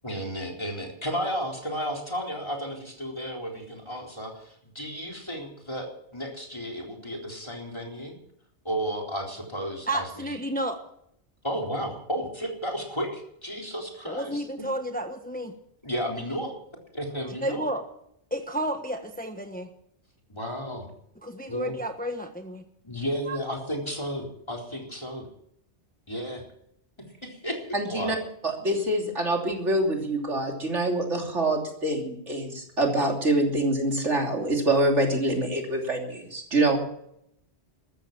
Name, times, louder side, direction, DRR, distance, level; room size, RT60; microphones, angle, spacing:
voice 1, 0.0-8.2 8.6-10.4 11.4-14.5 15.8-16.5 17.0-17.7 20.3-20.9 21.5-21.8 22.8-25.3 26.1-26.4 27.0-28.2, equal, 25° left, 0 dB, 4.0 m, -33 dB
voice 2, 9.9-10.8 14.1-15.5 17.4-17.8 18.3-19.7 21.2-22.6 23.3-23.4, right 1 dB, 10° left, 5 dB, 1.2 m, -31 dB
voice 3, 27.7-28.2 28.4-36.8, right 1 dB, 90° right, 1 dB, 3.5 m, -25 dB
14.0 x 13.5 x 7.3 m, 0.73 s
omnidirectional pair, 1.2 m